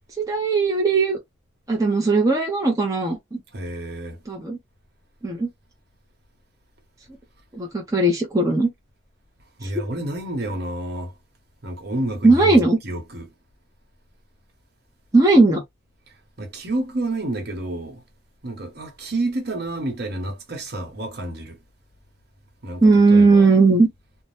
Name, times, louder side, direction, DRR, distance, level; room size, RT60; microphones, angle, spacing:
voice 1, 0.2-1.2 1.7-3.4 4.3-4.6 5.2-5.5 7.5-8.7 9.6-9.7 12.2-12.8 15.1-15.6 22.8-23.9, right 3 dB, 15° right, 0.6 m, -17 dB
voice 2, 3.5-4.2 9.6-11.2 11.6-13.3 16.4-18.0 18.4-21.6 22.6-23.5, right 1 dB, 55° right, 1.1 m, -29 dB
2.7 x 2.2 x 3.2 m
head